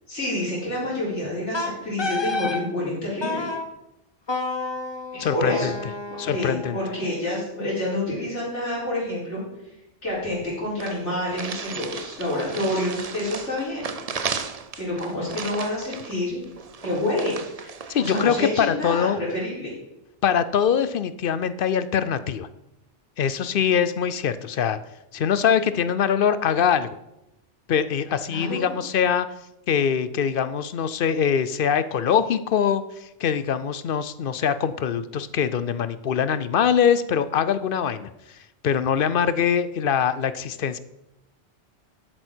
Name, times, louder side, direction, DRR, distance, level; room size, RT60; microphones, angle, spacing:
voice 1, 0.1-3.5 5.1-5.7 6.3-9.4 10.0-13.9 14.8-16.4 16.8-17.4 18.0-19.7 28.3-28.7, left 1 dB, 75° left, -7 dB, 4.8 m, -28 dB
Wind instrument woodwind instrument, 1.5-2.6 3.2-3.7 4.3-7.3, left 3 dB, 25° left, 0.9 m, -30 dB
voice 2, 5.2-5.7 6.2-6.8 17.9-19.2 20.2-22.5 23.2-24.8 25.1-26.9 27.7-29.3 29.7-38.1 38.6-40.8, left 8 dB, 55° left, 13 dB, 0.8 m, -23 dB
sound 1, 10.1-10.2 10.4-10.5 10.8-18.3, right 5 dB, 40° right, 0.7 m, -35 dB
12.5 x 7.9 x 4.5 m, 0.89 s
omnidirectional pair, 1.2 m